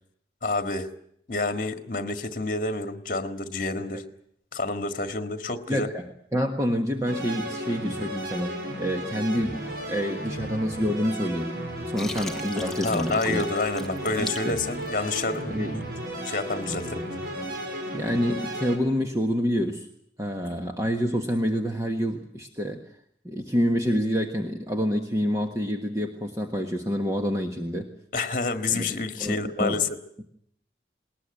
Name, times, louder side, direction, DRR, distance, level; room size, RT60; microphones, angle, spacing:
voice 1, 0.4-0.9 1.3-4.0 4.5-5.9 12.8-15.8 16.2-17.0 28.1-29.9, left 3 dB, 50° left, 7 dB, 1.8 m, -28 dB
voice 2, 5.7-11.5 11.9-13.5 14.2-14.6 15.5-15.7 17.9-19.9 20.2-22.9 23.2-27.9 28.7-28.9 29.2-29.8, equal, 20° right, 3 dB, 1.5 m, -27 dB
sound 1, 7.1-18.8, right 1 dB, 65° right, 4.6 m, -34 dB
Water, 12.0-15.4, left 2 dB, 5° left, 1.1 m, -39 dB
20.0 x 20.0 x 9.0 m, 0.70 s
head